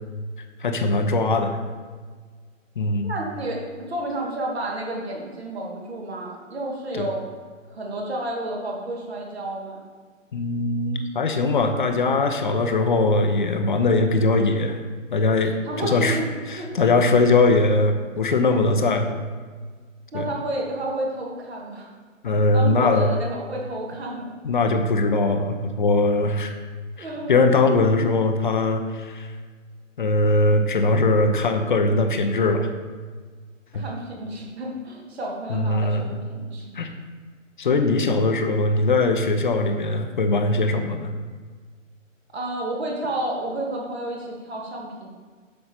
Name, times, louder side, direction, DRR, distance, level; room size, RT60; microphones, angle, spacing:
voice 1, 0.6-1.6 2.8-3.1 6.9-7.1 10.3-14.8 15.1-16.2 16.5-19.2 20.1-20.3 22.2-23.1 24.4-26.6 27.0-29.3 30.0-32.7 33.7-33.8 35.5-36.1 36.7-36.9 37.6-41.1, left 2 dB, 40° left, 6 dB, 0.7 m, -21 dB
voice 2, 3.0-3.6 3.9-7.2 7.7-9.8 15.6-16.3 16.5-16.7 20.1-21.9 22.5-24.3 27.0-27.4 33.7-36.8 42.3-45.1, right 1 dB, 50° right, -1 dB, 2.2 m, -31 dB
8.0 x 6.6 x 4.2 m, 1.5 s
figure-of-eight pair, 135°, 39 cm